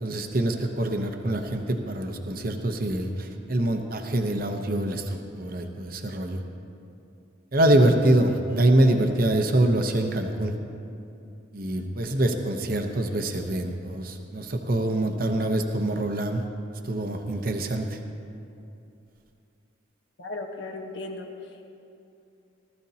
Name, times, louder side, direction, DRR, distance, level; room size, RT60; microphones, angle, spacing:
voice 1, 0.0-6.4 7.5-10.5 11.5-16.4 16.9-18.0, right 1 dB, 45° right, 5 dB, 0.8 m, -25 dB
voice 2, 20.2-21.7, left 2 dB, 65° left, 2 dB, 1.2 m, -37 dB
18.5 x 13.5 x 2.8 m, 2.7 s
head